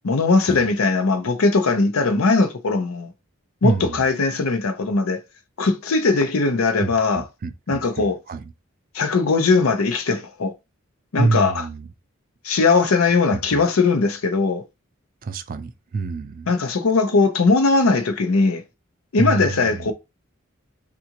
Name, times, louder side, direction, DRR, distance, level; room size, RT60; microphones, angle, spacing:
voice 1, 0.0-3.1 3.6-5.2 5.6-7.2 7.7-8.2 8.9-10.5 11.1-11.6 12.4-14.6 16.5-18.6 19.1-19.9, left 3 dB, 85° left, 0.6 m, -19 dB
voice 2, 3.6-4.1 6.8-8.5 11.2-11.9 13.3-13.6 15.2-16.5 19.2-19.9, right 3 dB, 45° right, 0.4 m, -27 dB
3.6 x 2.5 x 2.9 m
head